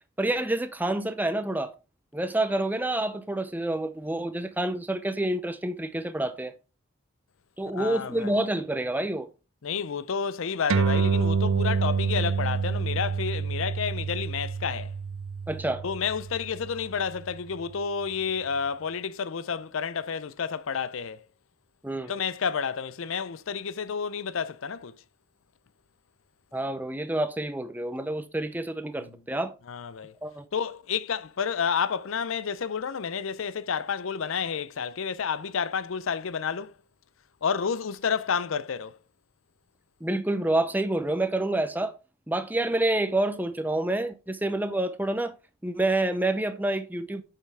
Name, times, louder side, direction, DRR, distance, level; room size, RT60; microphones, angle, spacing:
voice 1, 0.2-1.7 2.1-6.5 7.6-9.3 15.5-15.8 21.8-22.1 26.5-29.5 30.2-30.5 40.0-42.0 42.3-45.3 45.6-47.2, right 1 dB, 10° right, 0.6 m, -28 dB
voice 2, 7.7-8.3 9.6-14.9 15.8-21.2 22.1-25.0 29.0-29.2 29.7-30.1 30.5-36.7 37.4-39.0, left 6 dB, 75° left, 0.5 m, -30 dB
sound 1, 10.7-17.5, right 5 dB, 75° right, 0.5 m, -28 dB
7.9 x 5.8 x 3.4 m
head